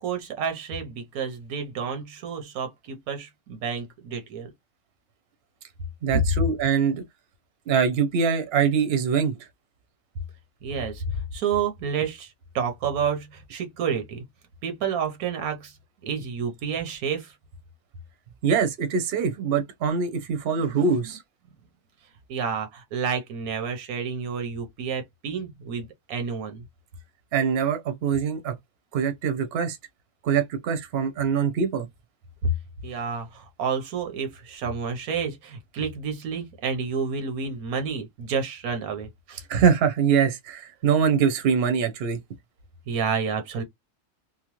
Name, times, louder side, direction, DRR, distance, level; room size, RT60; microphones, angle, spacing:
voice 1, 0.0-4.5 10.6-14.2 14.6-15.7 16.0-17.3 20.6-20.8 22.3-26.6 32.4-32.5 32.8-39.4 42.9-43.6, right 6 dB, 85° right, 1.3 m, -30 dB
voice 2, 6.0-7.0 7.7-9.4 18.4-21.2 27.3-28.5 28.9-29.8 30.2-31.9 39.5-42.2, right 6 dB, 55° right, 0.8 m, -23 dB
3.0 x 2.0 x 2.9 m
omnidirectional pair, 1.5 m